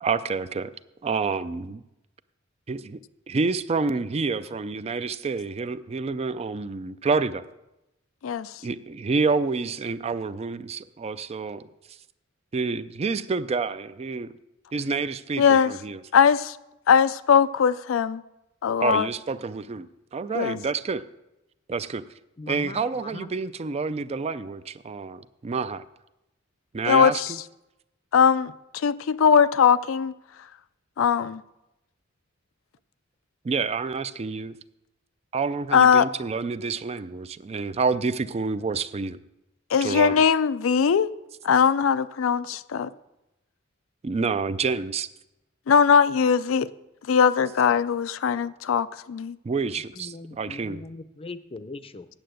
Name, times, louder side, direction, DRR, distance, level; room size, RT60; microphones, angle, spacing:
voice 1, 0.0-0.7 1.0-1.8 2.7-3.0 3.3-7.4 8.6-11.7 12.5-14.3 14.7-16.0 18.8-21.0 21.7-22.0 22.5-25.8 26.7-27.4 33.4-34.6 35.3-39.2 39.8-40.2 44.0-45.1 49.4-50.8, right 4 dB, 30° right, 0.4 m, -28 dB
voice 2, 15.4-15.7 16.1-16.6 16.9-18.2 18.6-19.1 20.3-20.6 26.9-27.3 28.1-30.1 31.0-31.4 35.7-36.1 39.7-41.1 41.4-42.9 45.7-46.7 47.1-49.4, left 7 dB, 80° left, 0.4 m, -20 dB
voice 3, 22.4-23.3 49.9-52.1, left 3 dB, 30° left, 0.6 m, -40 dB
8.9 x 7.5 x 7.7 m
head